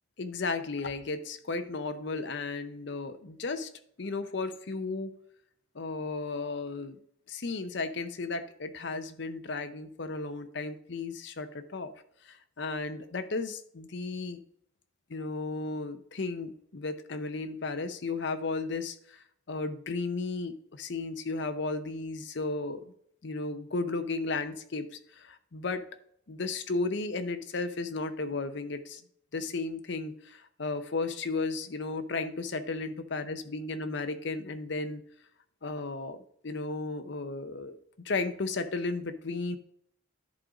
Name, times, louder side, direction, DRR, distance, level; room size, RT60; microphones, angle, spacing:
voice 1, 0.2-3.7 4.0-5.1 5.7-7.0 7.3-11.9 12.2-14.4 15.1-22.9 23.2-25.8 26.3-29.0 29.3-35.0 35.6-37.8 38.0-39.6, left 3 dB, 55° left, 10 dB, 0.7 m, -34 dB
10.5 x 3.8 x 5.0 m, 0.67 s
head